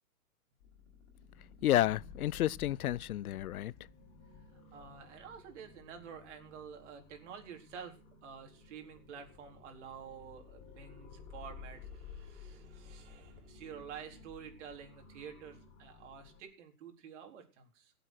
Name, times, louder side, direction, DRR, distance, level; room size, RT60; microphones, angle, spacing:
sound 1, 0.6-16.4, left 5 dB, 30° left, 5.5 m, -54 dB
voice 1, 1.6-3.7, left 13 dB, 70° left, 0.6 m, -30 dB
voice 2, 4.4-17.9, right 7 dB, 50° right, 4.2 m, -50 dB
17.5 x 8.1 x 6.2 m
hypercardioid pair, 145°, 45 cm